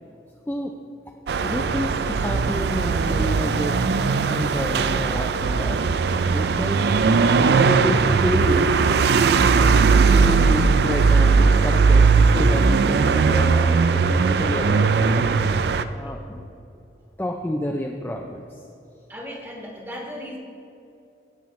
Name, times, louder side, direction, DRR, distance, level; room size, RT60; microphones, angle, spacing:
sound 1, 1.3-15.8, right 4 dB, 70° right, 0.4 m, -19 dB
voice 1, 1.4-3.8 4.3-5.8 6.3-6.8 7.3-8.7 10.1-16.5 17.2-18.6, left 1 dB, 10° left, 1 dB, 0.4 m, -30 dB
voice 2, 19.1-20.4, equal, 10° right, -1 dB, 1.4 m, -36 dB
17.5 x 7.1 x 3.2 m, 2.7 s
head